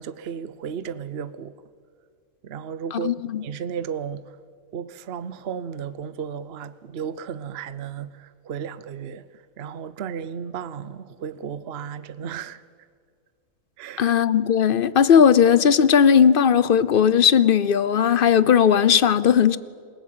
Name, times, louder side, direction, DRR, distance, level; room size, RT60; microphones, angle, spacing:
voice 1, 0.0-1.5 2.4-4.2 4.7-9.2 9.6-12.6 13.8-14.1, right 7 dB, 50° right, 0.9 m, -34 dB
voice 2, 2.9-3.4 14.0-19.6, left 8 dB, 50° left, 0.8 m, -17 dB
28.0 x 18.0 x 8.7 m
omnidirectional pair, 1.5 m